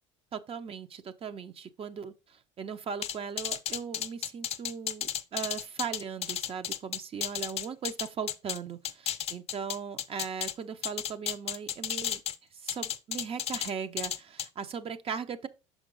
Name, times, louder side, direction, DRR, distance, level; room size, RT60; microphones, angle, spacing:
voice 1, 0.3-12.2 12.5-15.5, right 6 dB, 35° right, 0.6 m, -38 dB
sound 1, 3.0-8.6 8.8-10.5 10.8-12.3 12.7-13.7 14.0-14.5, left 10 dB, 40° left, 0.6 m, -33 dB
5.9 x 5.0 x 3.8 m
hypercardioid pair, 80°, 16 cm